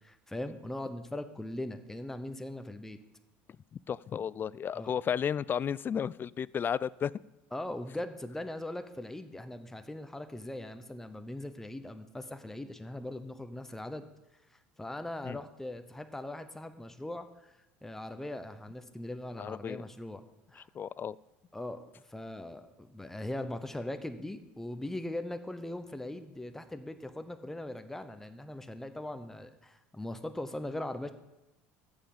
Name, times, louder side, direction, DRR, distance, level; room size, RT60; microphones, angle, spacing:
voice 1, 0.0-3.0 4.7-4.9 7.5-14.1 14.5-20.2 20.5-20.7 21.5-31.1, left 1 dB, 5° left, 9 dB, 0.8 m, -40 dB
voice 2, 3.7-7.1 15.2-15.4 19.4-19.8 20.7-21.2, left 8 dB, 35° left, 22 dB, 0.3 m, -33 dB
14.0 x 6.9 x 5.5 m, 0.97 s
hypercardioid pair, 80°, 6 cm